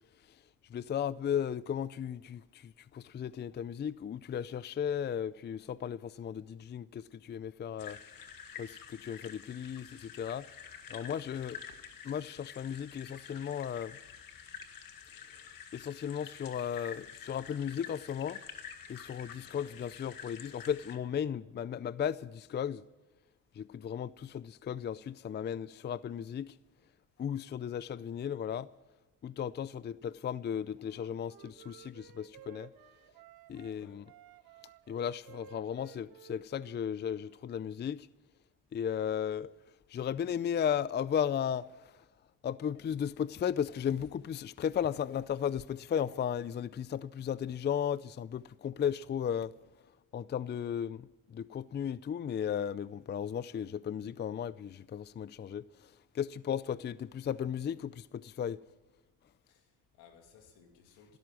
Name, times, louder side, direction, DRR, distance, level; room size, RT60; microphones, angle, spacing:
voice 1, 0.7-8.0 8.6-10.5 10.9-11.6 12.0-14.0 15.7-18.4 18.9-22.8 23.6-26.5 27.2-28.7 29.2-32.7 33.5-34.0 34.9-38.1 38.7-39.5 39.9-41.7 42.4-49.5 50.1-55.9 56.1-58.6, left 8 dB, 30° left, 0.4 m, -35 dB
sound 1, 7.8-21.0, left 7 dB, 60° left, 1.8 m, -49 dB
voice 2, 19.3-19.8 33.7-34.1 59.5-61.2, left 6 dB, 90° left, 2.7 m, -60 dB
Wind instrument woodwind instrument, 30.8-33.8 34.1-37.4, right 10 dB, 70° right, 1.2 m, -56 dB
16.0 x 13.0 x 6.1 m
supercardioid pair, 75°, 38 cm